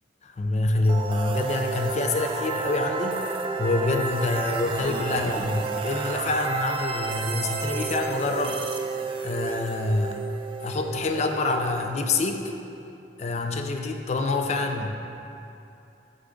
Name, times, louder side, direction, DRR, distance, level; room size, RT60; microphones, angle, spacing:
voice 1, 0.2-8.8 9.2-10.2 10.6-12.5 13.2-14.9, left 2 dB, 40° left, 5 dB, 0.4 m, -26 dB
sound 1, 0.8-12.7, right 4 dB, 30° right, 0.3 m, -31 dB
7.2 x 3.8 x 3.6 m, 2.7 s
head